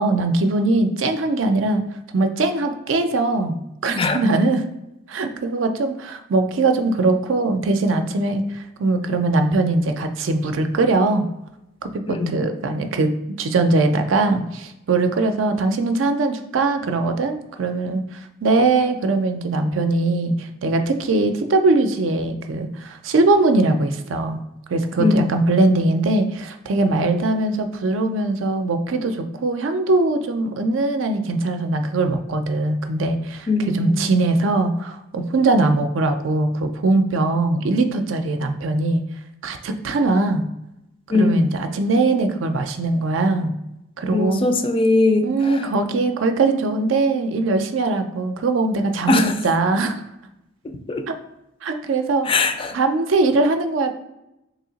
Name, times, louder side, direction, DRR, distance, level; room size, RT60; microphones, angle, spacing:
voice 1, 0.0-1.8 2.1-3.5 3.8-4.6 5.1-11.2 11.8-13.1 13.4-24.4 24.7-39.0 39.4-40.5 41.1-43.5 44.0-44.4 45.2-50.0 51.1-51.2 51.6-52.3 52.7-53.9, right 2 dB, 80° right, 7 dB, 0.5 m, -21 dB
voice 2, 12.1-12.4 25.0-25.3 33.5-34.2 41.1-41.5 44.1-45.7 49.1-49.4 50.9-51.0 52.2-52.7, left 3 dB, 30° left, 7 dB, 0.4 m, -20 dB
3.1 x 2.8 x 3.9 m, 0.88 s
head